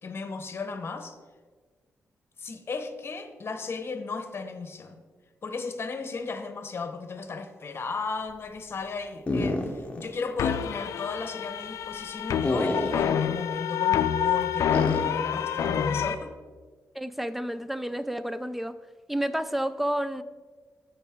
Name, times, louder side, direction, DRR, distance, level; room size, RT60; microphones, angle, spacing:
voice 1, 0.0-1.2 2.4-5.0 5.4-16.4, left 4 dB, 45° left, 8 dB, 1.0 m, -35 dB
sound 1, 9.3-10.1 10.4-10.5 12.4-13.2 14.7-15.2, left 2 dB, 25° left, 1.0 m, -29 dB
sound 2, 10.4-16.1, left 9 dB, 90° left, 0.5 m, -27 dB
voice 2, 16.9-18.8 19.1-20.2, right 1 dB, 5° right, 13 dB, 0.4 m, -30 dB
14.5 x 5.1 x 3.6 m, 1.4 s
cardioid pair, 95°, 5 cm